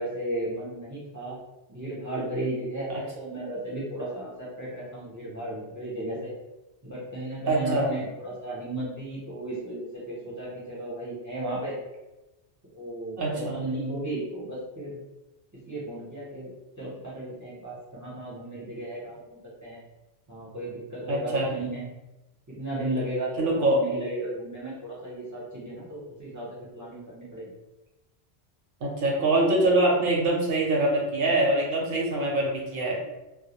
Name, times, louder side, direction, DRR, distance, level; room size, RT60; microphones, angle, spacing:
voice 1, 0.0-1.4 1.7-6.3 6.8-11.8 12.7-15.0 15.6-16.5 16.8-19.8 20.3-21.8 22.5-27.5, right 1 dB, 25° right, -8 dB, 0.5 m, -35 dB
voice 2, 7.5-7.9 13.2-13.6 21.1-21.5 23.4-23.8 28.8-33.0, right 2 dB, 60° right, -2 dB, 0.7 m, -24 dB
2.1 x 2.1 x 2.8 m, 1.0 s
omnidirectional pair, 1.1 m